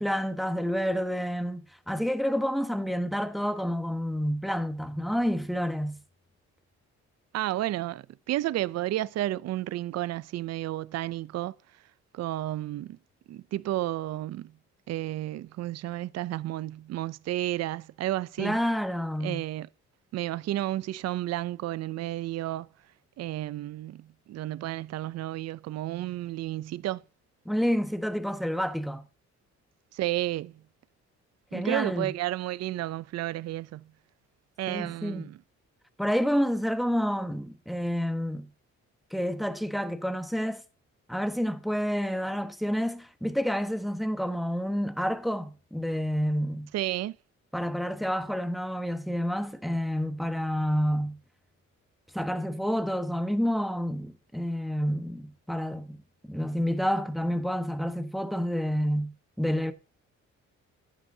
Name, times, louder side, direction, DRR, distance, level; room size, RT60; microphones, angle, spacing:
voice 1, 0.0-6.0 18.4-19.4 27.4-29.0 31.5-32.1 34.7-35.3 36.0-38.5 39.1-40.6 41.1-46.7 47.5-51.2 52.1-56.0 56.3-59.7, equal, ahead, 1.1 m, -29 dB
voice 2, 7.3-11.5 12.1-13.0 13.3-14.5 14.9-18.6 19.2-19.7 20.1-22.7 23.2-27.0 29.9-30.6 31.5-33.9 34.6-35.4 46.7-47.2, right 15 dB, 60° right, 0.5 m, -32 dB
14.0 x 9.8 x 2.7 m
cardioid pair, 90°, 30 cm